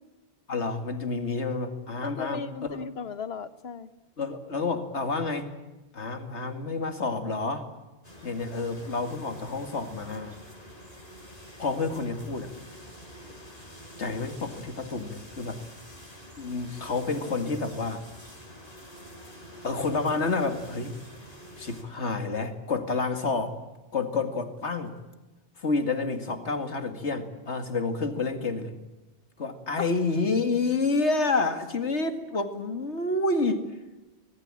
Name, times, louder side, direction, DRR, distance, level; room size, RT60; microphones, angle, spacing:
voice 1, 0.5-2.8 4.2-5.5 5.9-7.7 8.2-10.3 11.6-12.5 14.0-15.6 16.4-18.0 19.6-21.0 21.6-23.6 23.9-24.9 25.6-28.7 29.4-33.7, left 3 dB, 90° left, 7 dB, 2.5 m, -29 dB
voice 2, 2.0-3.9 29.8-29.9, left 5 dB, 65° left, 13 dB, 1.3 m, -36 dB
sound 1, 8.0-21.8, equal, 35° left, 5.0 m, -47 dB
25.5 x 19.5 x 8.9 m, 1.1 s
omnidirectional pair, 1.1 m